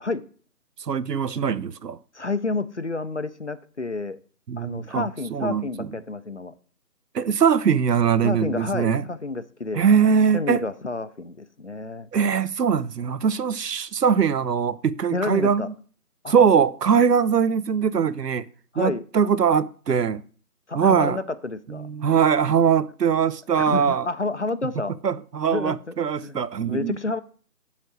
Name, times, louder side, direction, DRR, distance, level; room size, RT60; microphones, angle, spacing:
voice 1, 0.9-2.0 4.5-5.9 7.1-9.0 9.7-10.6 12.1-15.7 16.3-18.5 18.8-20.2 20.7-21.2 21.7-24.1 25.0-27.0, right 7 dB, 85° right, 0.7 m, -21 dB
voice 2, 2.1-4.2 4.6-6.5 8.2-12.1 15.1-15.7 16.2-16.3 18.7-19.0 20.7-21.9 23.5-24.9 25.5-27.2, left 3 dB, 50° left, 0.5 m, -30 dB
7.3 x 5.0 x 6.3 m
figure-of-eight pair, 165°, 47 cm